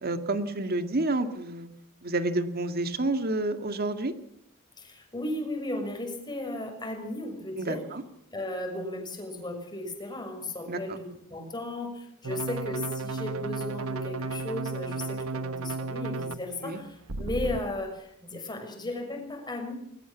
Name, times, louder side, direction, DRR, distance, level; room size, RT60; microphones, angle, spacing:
voice 1, 0.0-1.7 2.0-4.1 7.6-8.0 10.7-11.0 16.5-16.8, right 2 dB, 45° right, 8 dB, 2.1 m, -29 dB
voice 2, 4.8-7.8 8.3-19.7, left 1 dB, 20° left, 4 dB, 6.4 m, -35 dB
sound 1, 12.2-16.3 17.1-17.6, right 3 dB, 75° right, 1.2 m, -33 dB
20.5 x 20.5 x 7.2 m, 0.75 s
head